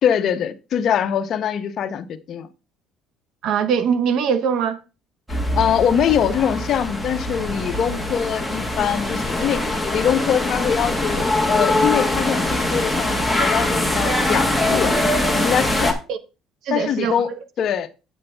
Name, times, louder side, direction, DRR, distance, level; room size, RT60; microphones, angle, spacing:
voice 1, 0.0-2.5 5.3-14.9 15.3-15.9 16.7-17.3 17.6-17.9, left 8 dB, 50° left, 0.8 m, -23 dB
voice 2, 3.4-4.8 16.1-16.2 16.6-17.4, right 7 dB, 65° right, 0.9 m, -22 dB
sound 1, 5.3-15.9, left 1 dB, 5° right, 1.5 m, -22 dB
8.0 x 7.5 x 3.3 m
cardioid pair, 125°, 0 cm